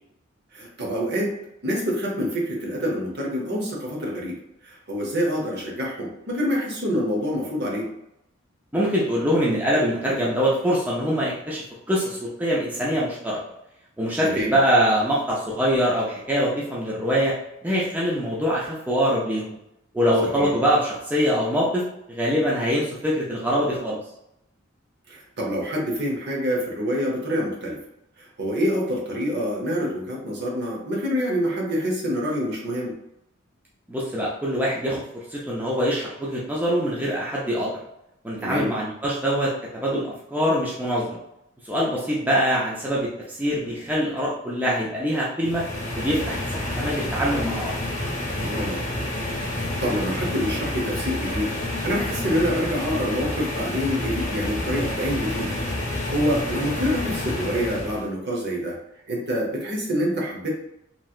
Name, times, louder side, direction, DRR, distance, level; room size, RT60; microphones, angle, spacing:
voice 1, 0.5-1.3 1.6-4.4 4.6-7.9 14.2-14.5 20.2-20.5 25.1-27.8 28.2-33.0 38.4-38.7 48.4-48.8 49.5-55.6 55.9-58.8 59.1-60.5, equal, 55° right, -2 dB, 0.9 m, -26 dB
voice 2, 8.7-13.4 14.0-17.3 17.6-19.6 19.9-21.8 22.1-24.0 33.9-37.7 38.2-41.2 41.6-45.6 46.0-47.7, equal, 10° right, -6 dB, 0.5 m, -24 dB
sound 1, 45.4-58.1, left 1 dB, 35° left, 0.7 m, -29 dB
3.1 x 2.8 x 2.4 m, 0.83 s
head